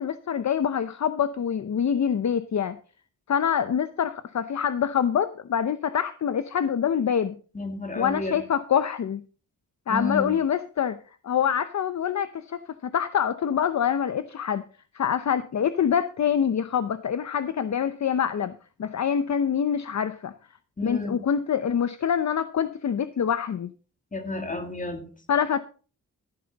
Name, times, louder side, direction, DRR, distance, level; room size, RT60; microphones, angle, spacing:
voice 1, 0.0-2.8 3.3-7.4 7.9-9.2 9.9-11.0 11.2-14.6 14.9-20.3 20.8-23.7 25.3-25.6, left 8 dB, 50° left, 0.7 m, -25 dB
voice 2, 7.5-8.4 9.9-10.4 20.8-21.2 24.1-25.1, left 2 dB, 20° left, 2.2 m, -31 dB
14.5 x 8.8 x 4.0 m
wide cardioid pair, 105°, 35 cm